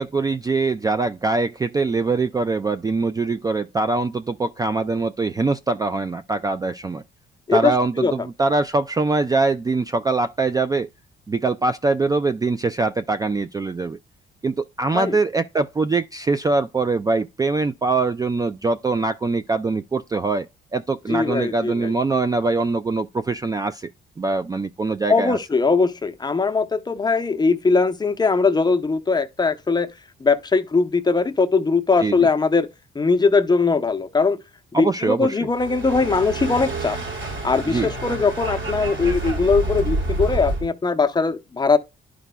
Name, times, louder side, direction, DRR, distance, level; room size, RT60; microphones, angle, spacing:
voice 1, 0.0-7.0 7.5-10.9 11.3-14.0 14.4-20.5 20.7-23.9 24.2-25.4 32.0-32.3 34.7-35.4 37.7-37.9, right 3 dB, 20° right, 0.3 m, -23 dB
voice 2, 7.5-8.1 14.9-15.2 21.1-21.9 25.1-29.9 30.2-32.7 32.9-34.4 34.8-37.0 37.4-41.8, left 4 dB, 20° left, 0.7 m, -20 dB
sound 1, 35.5-40.7, right 2 dB, 70° right, 3.8 m, -28 dB
11.0 x 5.0 x 2.2 m
cardioid pair, 90°, 20 cm